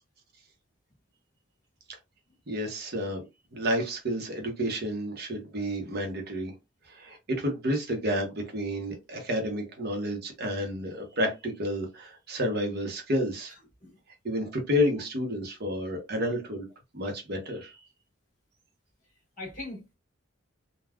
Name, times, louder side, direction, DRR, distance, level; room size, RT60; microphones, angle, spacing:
voice 1, 2.5-3.2 3.5-6.5 6.9-13.5 14.2-16.7 16.9-17.7, equal, 50° right, 0.8 m, -30 dB
voice 2, 13.5-14.0 19.4-19.9, left 2 dB, 40° left, 1.6 m, -41 dB
3.4 x 2.2 x 2.3 m
head